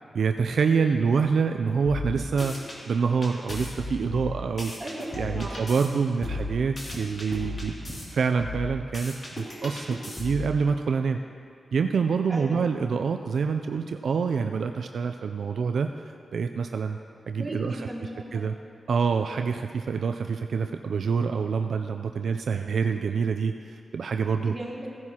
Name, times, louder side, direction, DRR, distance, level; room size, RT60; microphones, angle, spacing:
voice 1, 0.1-2.5 2.9-4.7 5.1-7.7 8.1-11.2 11.7-15.9 16.3-17.0 17.3-17.9 18.3-18.5 18.9-24.5, right 5 dB, 80° right, 6 dB, 0.3 m, -26 dB
sound 1, 1.9-2.8 3.2-5.9 6.2-8.0 8.4-10.5, left 2 dB, 40° left, 2.5 m, -35 dB
voice 2, 4.8-5.8 12.3-12.7 17.4-18.4 24.4-24.9, right 1 dB, 30° right, -6 dB, 2.8 m, -37 dB
16.0 x 10.5 x 2.9 m, 2.4 s
wide cardioid pair, 100°, 0 cm